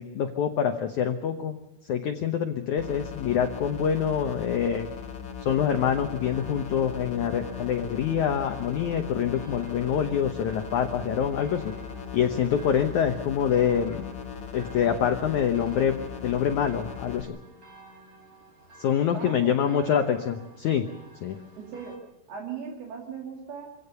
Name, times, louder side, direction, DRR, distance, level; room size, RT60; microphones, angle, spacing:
voice 1, 0.0-1.6 1.9-4.9 5.4-11.7 12.1-14.1 14.5-17.4 18.8-20.9 21.2-21.4, left 8 dB, 75° left, 6 dB, 1.8 m, -26 dB
sound 1, 2.8-17.2, left 7 dB, 40° left, 1.9 m, -39 dB
sound 2, 5.4-22.0, right 2 dB, 35° right, 4.6 m, -51 dB
voice 2, 19.1-20.0 21.6-22.0 22.3-23.7, right 6 dB, 65° right, -1 dB, 4.4 m, -37 dB
25.5 x 17.0 x 6.9 m, 0.94 s
omnidirectional pair, 4.9 m